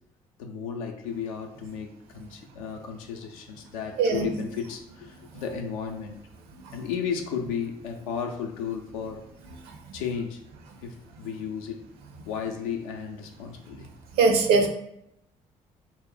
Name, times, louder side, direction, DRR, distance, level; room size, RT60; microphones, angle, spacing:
voice 1, 0.4-6.1 6.7-9.3 9.9-10.4 10.8-11.8 12.3-13.9, left 7 dB, 85° left, 3 dB, 0.4 m, -34 dB
voice 2, 4.0-4.3 6.6-6.7 9.6-10.0 14.1-14.7, right 4 dB, 70° right, 4 dB, 0.6 m, -22 dB
2.2 x 2.0 x 3.8 m, 0.79 s
hypercardioid pair, 50°, 17 cm